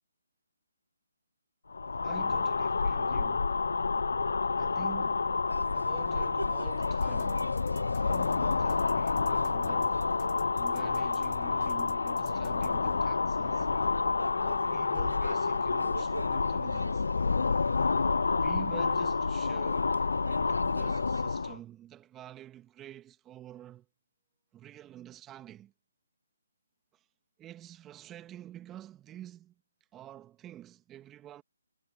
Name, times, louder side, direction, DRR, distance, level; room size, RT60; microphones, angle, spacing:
sound 1, 1.7-21.6, left 4 dB, 65° left, 0.5 m, -29 dB
voice 1, 2.0-3.6 4.6-5.2 5.7-7.5 8.0-10.1 10.6-13.7 14.4-17.0 18.3-20.0 20.3-23.9 24.5-25.7 27.4-29.5 29.9-31.4, right 12 dB, 15° right, 2.2 m, -48 dB
sound 2, 5.5-21.2, right 1 dB, 90° right, 4.3 m, -45 dB
sound 3, 6.8-12.7, left 22 dB, 25° left, 2.9 m, -52 dB
figure-of-eight pair, 145°, 0 cm